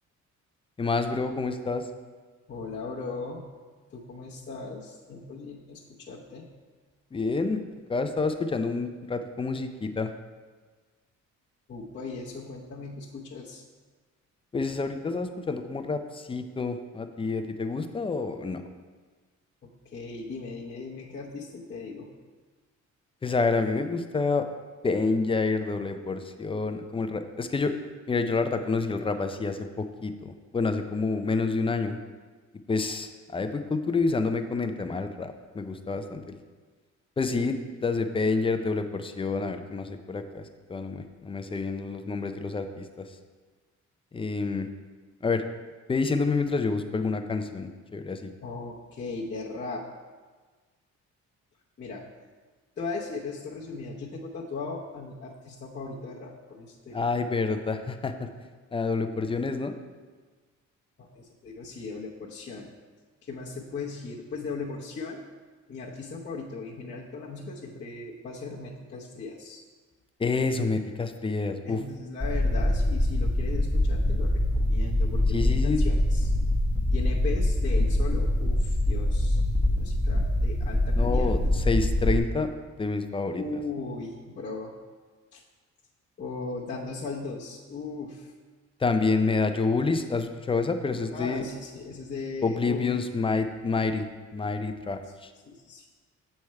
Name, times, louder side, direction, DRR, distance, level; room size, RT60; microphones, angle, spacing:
voice 1, 0.8-1.8 7.1-7.6 7.9-10.1 14.5-18.6 23.2-24.5 24.8-27.7 28.1-32.0 32.7-36.4 37.2-40.4 40.7-43.1 44.1-44.7 45.2-45.4 45.9-48.3 56.9-58.1 58.7-59.7 70.2-71.8 75.3-75.8 80.9-83.4 88.8-91.4 92.4-94.0 94.3-95.3, left 4 dB, 20° left, 8 dB, 0.4 m, -28 dB
voice 2, 2.5-3.5 3.9-6.5 11.7-13.6 19.6-22.1 48.4-49.9 51.8-52.0 52.8-57.1 61.0-62.7 63.3-65.2 65.7-69.6 71.6-76.3 76.9-79.4 79.7-81.3 83.3-84.7 85.3-85.4 86.2-88.3 91.0-93.0 95.4-95.9, left 4 dB, 35° left, -6 dB, 0.8 m, -38 dB
sound 1, 72.2-82.2, left 1 dB, 5° right, 0.9 m, -24 dB
7.0 x 3.3 x 4.6 m, 1.4 s
cardioid pair, 90°, 30 cm